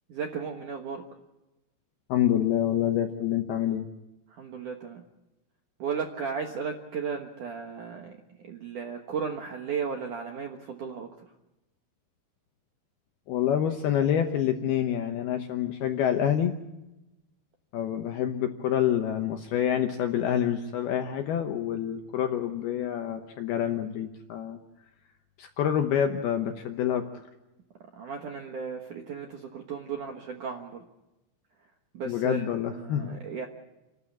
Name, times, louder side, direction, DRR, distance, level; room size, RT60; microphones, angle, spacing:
voice 1, 0.1-1.0 4.4-5.0 5.8-8.2 8.5-11.1 28.0-30.8 31.9-32.4 32.7-33.5, right 6 dB, 65° right, 3 dB, 2.0 m, -35 dB
voice 2, 2.1-3.9 13.3-16.5 17.7-24.6 25.4-27.1 32.1-33.1, left 10 dB, 75° left, 6 dB, 2.4 m, -27 dB
29.0 x 12.5 x 8.6 m, 0.99 s
omnidirectional pair, 5.7 m